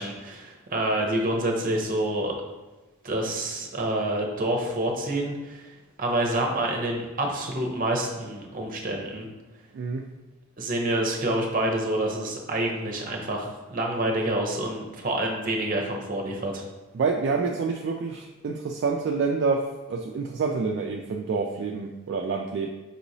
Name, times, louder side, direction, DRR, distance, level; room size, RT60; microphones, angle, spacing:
voice 1, 0.0-2.3 3.0-5.7 6.0-9.3 10.6-16.6, right 1 dB, 45° right, 1 dB, 0.7 m, -27 dB
voice 2, 9.7-10.1 16.9-22.7, right 4 dB, 60° right, 2 dB, 0.3 m, -27 dB
5.4 x 3.0 x 2.6 m, 1.2 s
head